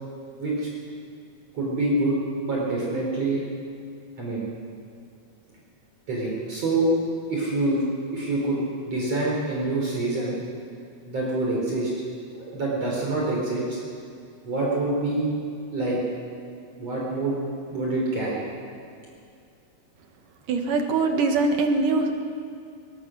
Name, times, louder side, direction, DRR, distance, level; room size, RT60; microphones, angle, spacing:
voice 1, 0.4-0.7 1.5-2.2 2.4-3.4 4.2-4.5 6.1-6.9 7.3-7.8 8.1-10.4 11.1-11.9 12.3-13.8 14.4-15.3 15.7-16.0 16.8-17.4 17.7-18.4, right 2 dB, 45° right, -4 dB, 4.5 m, -26 dB
voice 2, 20.5-22.3, right 3 dB, 65° right, 4 dB, 3.0 m, -23 dB
21.5 x 20.5 x 6.3 m, 2.4 s
omnidirectional pair, 4.2 m